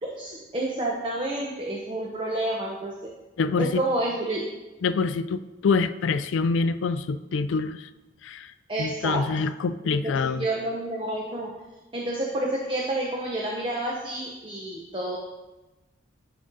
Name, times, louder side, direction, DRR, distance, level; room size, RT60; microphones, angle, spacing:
voice 1, 0.0-3.1 3.6-4.4 8.7-9.2 9.8-11.5 11.9-15.2, right 1 dB, 25° right, -2 dB, 0.7 m, -29 dB
voice 2, 3.4-3.8 4.8-7.9 8.2-8.5 8.8-10.4, left 4 dB, 70° left, 13 dB, 0.3 m, -26 dB
11.0 x 3.8 x 3.9 m, 1.1 s
head